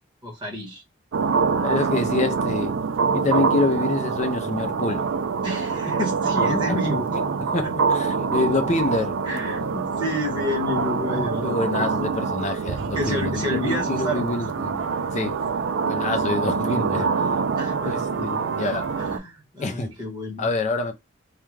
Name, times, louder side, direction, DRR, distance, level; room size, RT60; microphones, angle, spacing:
voice 1, 0.2-0.8 5.4-7.1 7.4-7.7 9.3-12.1 12.9-14.4 17.6-18.0 19.0-20.5, left 1 dB, 25° right, 1.1 m, -30 dB
sound 1, 1.1-19.2, right 5 dB, 70° right, 0.4 m, -25 dB
voice 2, 1.6-2.7 3.1-5.0 6.4-6.8 7.1-7.2 7.5-9.2 11.2-14.8 15.1-15.4 15.8-17.3 17.8-19.0 19.6-19.9 20.4-20.9, left 3 dB, 35° left, 0.5 m, -26 dB
2.4 x 2.2 x 3.1 m
head